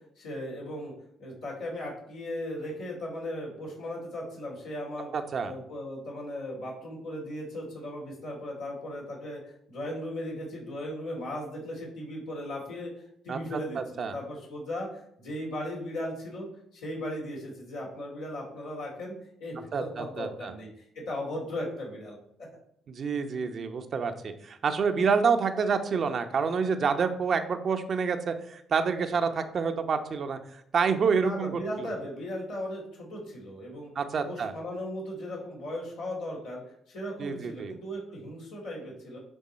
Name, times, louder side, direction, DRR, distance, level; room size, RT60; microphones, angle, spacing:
voice 1, 0.2-0.9 1.2-5.1 5.4-22.1 31.1-33.9 34.2-36.6 36.9-39.2, left 1 dB, 85° left, -5 dB, 2.7 m, -37 dB
voice 2, 5.1-5.5 13.3-14.2 19.7-20.5 22.9-30.4 30.7-31.5 31.8-31.9 34.0-34.5 37.2-37.7, right 5 dB, 55° right, 7 dB, 0.9 m, -28 dB
10.0 x 3.7 x 4.3 m, 0.71 s
supercardioid pair, 60°, 0 cm